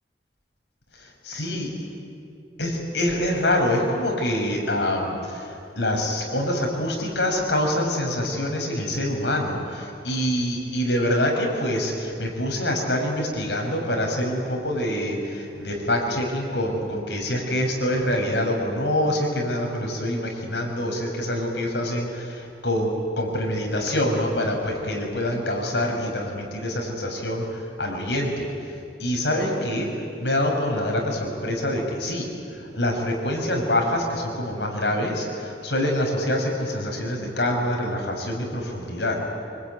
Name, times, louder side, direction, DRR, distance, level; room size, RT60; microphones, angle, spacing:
voice 1, 0.9-1.7 2.6-28.5 29.0-32.3 32.6-39.2, left 1 dB, 80° left, 1 dB, 5.8 m, -25 dB
25.5 x 24.0 x 9.4 m, 2.5 s
head